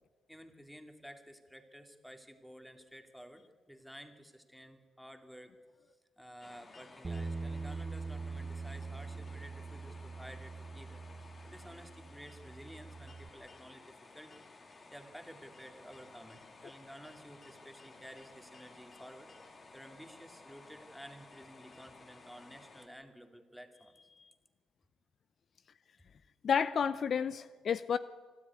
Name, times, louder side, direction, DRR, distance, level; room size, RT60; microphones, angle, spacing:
voice 1, 0.3-5.6 6.2-23.9, equal, ahead, 6 dB, 2.4 m, -53 dB
sound 1, 6.4-22.9, left 3 dB, 35° left, 2.9 m, -56 dB
Bass guitar, 7.0-13.3, right 4 dB, 25° right, 1.0 m, -43 dB
voice 2, 26.4-28.0, left 7 dB, 55° left, 15 dB, 0.6 m, -31 dB
25.0 x 12.5 x 9.6 m, 1.5 s
cardioid pair, 90°, 0 cm